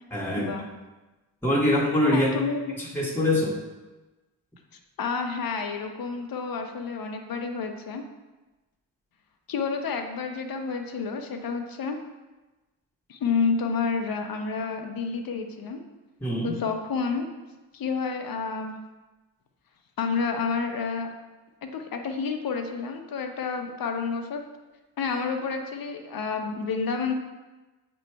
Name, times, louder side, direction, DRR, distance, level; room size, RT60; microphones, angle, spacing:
voice 1, 0.1-0.5 1.4-2.4 2.8-3.6 16.2-16.5, left 1 dB, 5° left, -4 dB, 1.6 m, -24 dB
voice 2, 2.1-2.8 5.0-8.0 9.5-12.0 13.1-15.8 16.4-17.3 17.7-18.7 20.0-21.1 21.6-24.4 25.0-27.1, left 5 dB, 45° left, 5 dB, 1.0 m, -29 dB
7.8 x 3.1 x 4.7 m, 1.1 s
hypercardioid pair, 45°, 47 cm